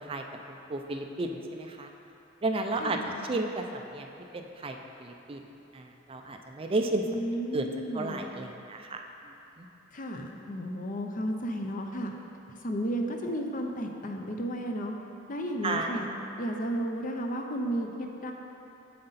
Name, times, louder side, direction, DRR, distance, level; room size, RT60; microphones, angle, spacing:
voice 1, 0.0-1.9 2.4-3.0 3.3-4.1 4.3-5.4 5.7-7.1 7.5-7.7 7.9-9.0 9.6-9.7 15.6-16.0, right 2 dB, 30° right, 4 dB, 0.4 m, -33 dB
voice 2, 2.8-3.2 7.1-8.3 9.9-12.1 12.5-14.9 15.3-16.1 16.4-18.3, equal, 45° left, 3 dB, 0.7 m, -33 dB
7.7 x 7.7 x 4.1 m, 2.9 s
head